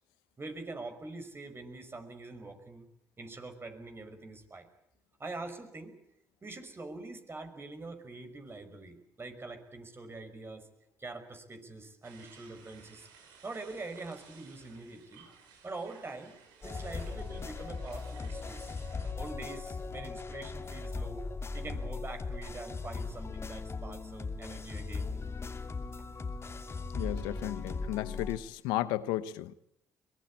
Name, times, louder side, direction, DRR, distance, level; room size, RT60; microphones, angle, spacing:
voice 1, 0.4-2.9 3.2-4.7 5.2-5.9 6.4-10.7 11.0-13.1 13.4-15.3 15.6-16.3 16.6-18.7 19.2-21.3 21.5-25.1, right 3 dB, 30° right, 5.7 m, -44 dB
sound 1, 12.0-19.1, right 6 dB, 85° right, 5.3 m, -57 dB
sound 2, 16.6-28.4, left 4 dB, 35° left, 2.8 m, -38 dB
voice 2, 26.9-29.5, left 15 dB, 85° left, 0.9 m, -34 dB
23.0 x 20.5 x 8.7 m
supercardioid pair, 60°, 8 cm